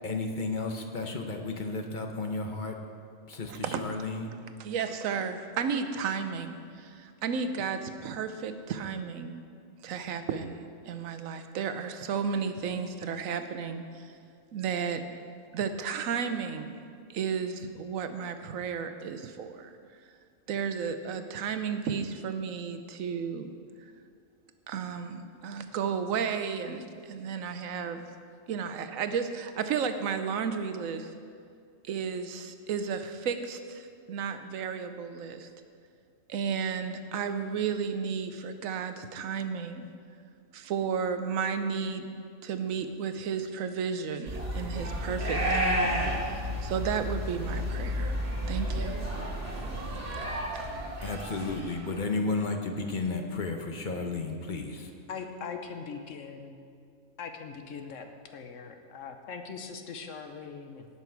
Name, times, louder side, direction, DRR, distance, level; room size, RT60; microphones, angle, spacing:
voice 1, 0.0-2.8 3.3-4.3 51.0-54.9, left 3 dB, 40° left, 4 dB, 1.0 m, -33 dB
voice 2, 3.5-3.8 4.6-9.4 9.8-10.6 10.9-14.1 14.5-15.0 15.5-16.8 17.1-19.8 20.5-23.5 24.7-28.0 28.5-31.1 31.8-35.5 36.3-39.9 40.5-42.2 42.4-48.2 48.5-49.0, right 6 dB, 85° right, 8 dB, 1.1 m, -33 dB
sound 1, 44.3-51.9, equal, 45° right, 1.8 m, -31 dB
voice 3, 55.1-56.6 57.2-60.9, left 5 dB, 70° left, 6 dB, 1.2 m, -41 dB
17.5 x 6.0 x 4.6 m, 2.3 s
omnidirectional pair, 1.4 m